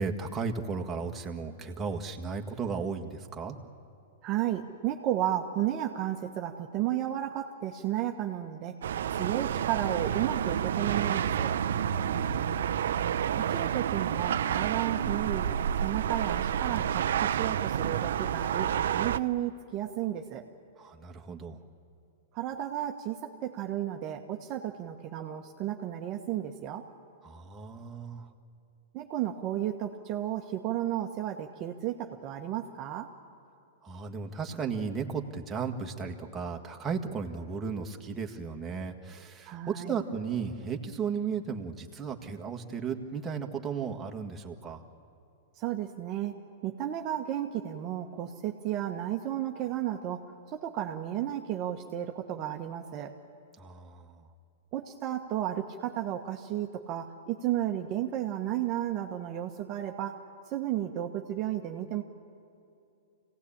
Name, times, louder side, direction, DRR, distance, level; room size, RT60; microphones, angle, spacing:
voice 1, 0.0-3.5 11.9-12.8 20.8-21.6 27.2-28.3 33.8-44.8 53.6-54.3, right 5 dB, 15° right, 2 dB, 1.7 m, -35 dB
voice 2, 4.2-8.8 9.1-11.5 13.4-15.5 15.8-20.4 22.3-26.9 28.9-33.1 39.5-40.0 45.6-46.4 46.6-50.2 50.5-53.1 54.7-60.2 60.5-62.0, right 12 dB, 35° right, 3 dB, 1.2 m, -33 dB
sound 1, 8.8-19.2, right 9 dB, 75° right, 0.6 m, -29 dB
25.5 x 17.5 x 8.7 m, 2.5 s
hypercardioid pair, 125°, 0 cm